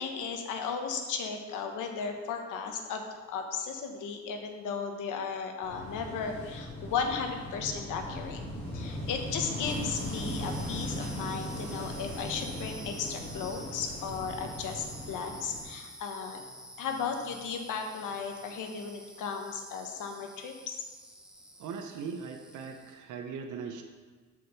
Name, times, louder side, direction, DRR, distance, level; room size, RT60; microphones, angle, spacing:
voice 1, 0.0-8.4 8.7-16.4 16.8-20.8, left 6 dB, 85° left, 4 dB, 1.2 m, -35 dB
Wind / Waves surf, 5.6-15.6, equal, 20° left, 2.8 m, -38 dB
sound 1, 9.5-23.1, equal, 5° right, 1.0 m, -49 dB
voice 2, 21.6-23.8, right 5 dB, 75° right, 4 dB, 0.9 m, -39 dB
8.0 x 5.0 x 6.9 m, 1.4 s
cardioid pair, 90°, 30 cm